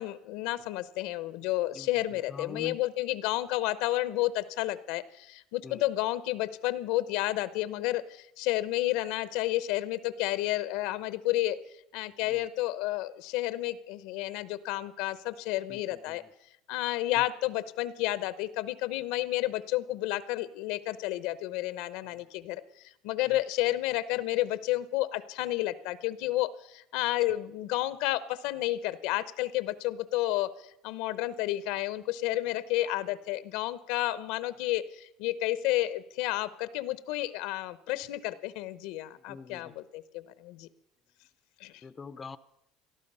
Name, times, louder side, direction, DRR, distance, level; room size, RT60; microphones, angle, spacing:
voice 1, 0.0-11.6 11.9-16.2 16.7-22.6 23.0-30.5 30.8-40.7 41.6-41.7, left 16 dB, 75° left, 0.8 m, -31 dB
voice 2, 1.7-2.8 5.6-5.8 12.2-12.5 15.7-16.3 17.2-17.3 23.3-23.4 39.3-39.8 41.8-42.4, left 4 dB, 25° left, 0.6 m, -45 dB
18.5 x 12.5 x 5.5 m
supercardioid pair, 110°, 0 cm